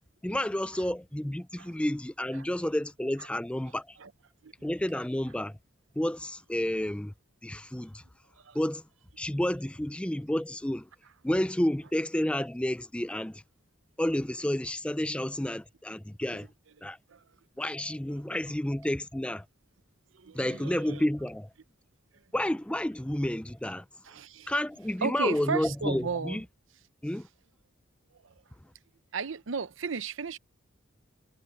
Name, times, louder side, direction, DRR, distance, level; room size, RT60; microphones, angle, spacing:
voice 1, 0.2-4.0 4.6-5.6 6.0-7.1 7.4-8.0 8.5-8.8 9.2-10.9 11.2-13.4 14.0-16.5 16.8-17.0 17.6-19.4 20.3-21.5 22.3-23.8 24.5-26.4 27.0-27.3, left 1 dB, 5° left, 0.4 m, -30 dB
voice 2, 20.1-21.0 24.0-24.5 25.0-26.4 28.2-28.3 29.1-30.4, right 5 dB, 75° right, 0.7 m, -35 dB
head